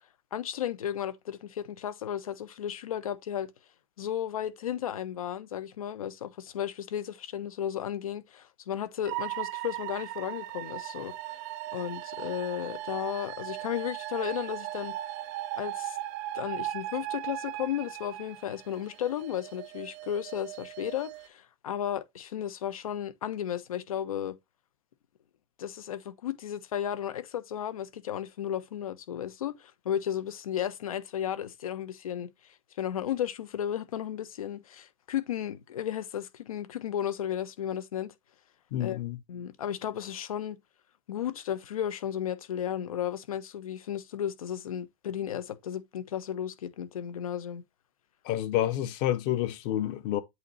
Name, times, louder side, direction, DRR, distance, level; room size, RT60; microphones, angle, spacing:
voice 1, 0.3-3.5 4.0-11.1 11.7-14.9 15.6-16.0 16.3-24.4 25.6-32.3 32.8-38.1 38.8-39.0 39.3-40.6 41.1-47.6, left 10 dB, 80° left, 1.0 m, -34 dB
sound 1, 9.0-21.3, right 15 dB, 35° right, 0.4 m, -38 dB
voice 2, 38.7-39.2 48.2-50.2, left 12 dB, 35° left, 0.9 m, -29 dB
8.2 x 2.9 x 4.1 m
hypercardioid pair, 155°, 18 cm